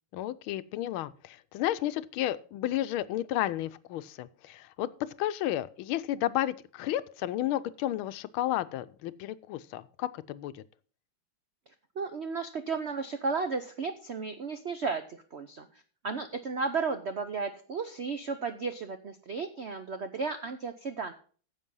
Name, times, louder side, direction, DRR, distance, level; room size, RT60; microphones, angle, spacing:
voice 1, 0.1-10.6, left 13 dB, 85° left, 14 dB, 1.5 m, -32 dB
voice 2, 12.0-15.7 16.0-21.1, right 4 dB, 75° right, 8 dB, 0.6 m, -34 dB
10.0 x 7.4 x 5.4 m, 0.42 s
omnidirectional pair, 2.2 m